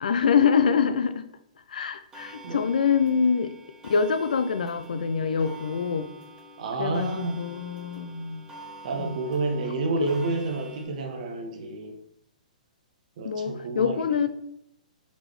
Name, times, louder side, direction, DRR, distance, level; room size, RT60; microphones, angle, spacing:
voice 1, 0.0-1.3 1.7-3.5 3.8-6.1 6.8-8.5 8.9-9.2 13.2-14.3, left 6 dB, 80° left, 11 dB, 0.4 m, -25 dB
Clock, 2.1-10.9, right 1 dB, 15° right, 0.9 m, -47 dB
voice 2, 6.6-7.4 8.8-12.0 13.2-14.0, right 3 dB, 60° right, 5 dB, 0.7 m, -29 dB
4.1 x 3.3 x 3.1 m, 0.76 s
hypercardioid pair, 130°, 4 cm